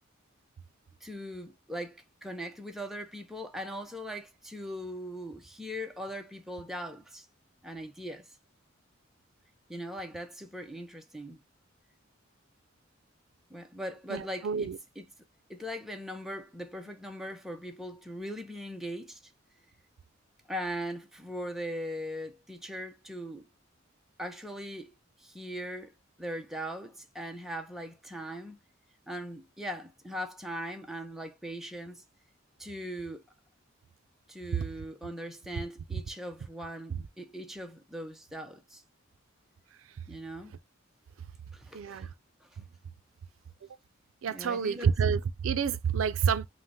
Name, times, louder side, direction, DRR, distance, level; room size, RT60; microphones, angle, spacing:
voice 1, 1.0-7.3 7.6-8.3 9.7-11.4 13.5-15.1 15.5-19.2 20.5-23.4 24.2-24.9 25.2-25.9 26.2-28.6 29.1-32.0 32.6-33.2 34.3-38.8 40.1-40.6 41.5-42.1 42.4-42.5 44.3-44.9, equal, ahead, 0.5 m, -40 dB
voice 2, 14.1-14.8 41.7-42.1 44.2-46.5, right 6 dB, 85° right, 0.4 m, -28 dB
5.5 x 2.1 x 2.7 m
head